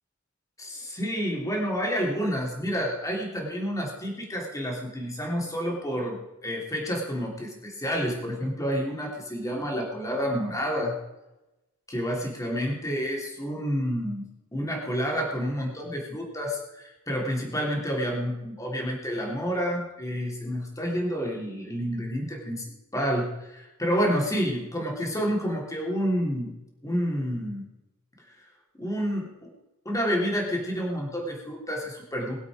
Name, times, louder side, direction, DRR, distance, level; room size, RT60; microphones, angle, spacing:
voice 1, 0.6-10.9 11.9-14.2 14.5-22.6 22.9-26.5 26.8-27.7 28.8-29.5 29.8-32.4, equal, 15° left, -1 dB, 3.1 m, -29 dB
21.5 x 7.9 x 5.0 m, 0.99 s
head